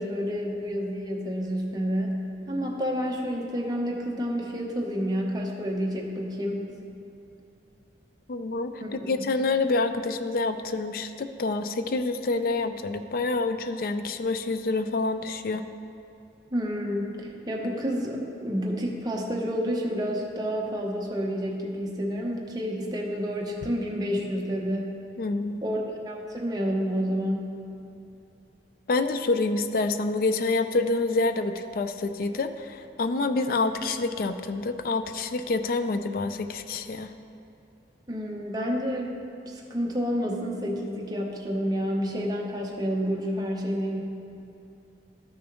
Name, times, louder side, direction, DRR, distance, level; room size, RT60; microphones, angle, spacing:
voice 1, 0.0-6.6 8.8-8.9 16.5-24.9 25.6-27.5 38.1-39.1 39.5-44.0, equal, 20° right, -1 dB, 0.9 m, -29 dB
voice 2, 8.3-8.7 9.0-15.6 25.2-25.6 28.9-37.1, left 3 dB, 55° left, 9 dB, 0.4 m, -27 dB
13.0 x 6.2 x 3.1 m, 2.7 s
head